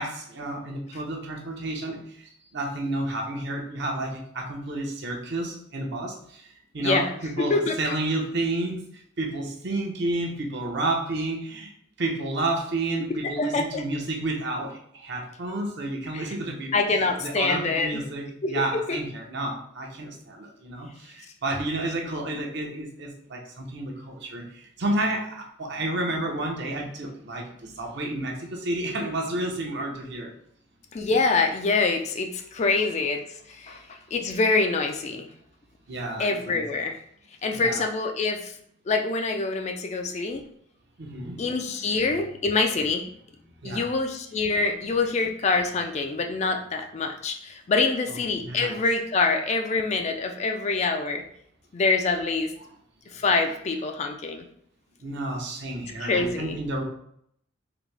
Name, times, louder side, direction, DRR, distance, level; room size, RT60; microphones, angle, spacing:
voice 1, 0.0-8.8 9.2-11.7 12.0-30.3 35.9-36.6 37.5-37.9 41.0-42.0 43.6-43.9 44.8-45.0 48.1-48.8 55.0-56.8, right 2 dB, 55° right, 0 dB, 0.8 m, -31 dB
voice 2, 7.4-7.9 13.2-13.8 16.1-16.3 16.7-18.0 18.4-18.5 18.9-19.0 30.9-33.2 33.5-35.3 36.2-37.0 37.4-38.5 38.9-40.4 41.4-43.0 43.6-51.2 51.7-52.5 53.1-54.4 56.0-56.6, left 3 dB, 35° left, 5 dB, 0.3 m, -25 dB
4.0 x 2.7 x 3.3 m, 0.68 s
head